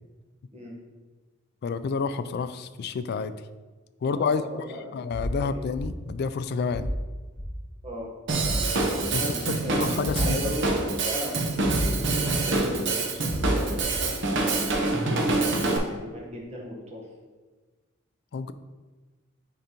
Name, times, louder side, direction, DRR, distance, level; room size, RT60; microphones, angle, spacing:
voice 1, 1.6-3.4 4.0-4.4 4.9-6.9 9.1-9.3 9.7-10.5 18.3-18.5, left 5 dB, 55° left, 12 dB, 0.3 m, -29 dB
voice 2, 4.1-5.6 7.8-8.1 9.1-14.9 15.7-17.1, equal, 35° right, -2 dB, 1.1 m, -37 dB
sound 1, 5.1-5.3 5.8-5.9 6.7-7.0 7.4-7.5 8.4-8.6 9.0-9.1 10.0-10.2 10.6-10.7 11.6-11.9 12.2-12.3 13.3-13.5 13.9-14.0, equal, 20° left, 1.4 m, -30 dB
Drum kit / Drum, 8.3-15.8, right 3 dB, 60° right, 0.8 m, -26 dB
8.9 x 3.8 x 2.9 m, 1.3 s
head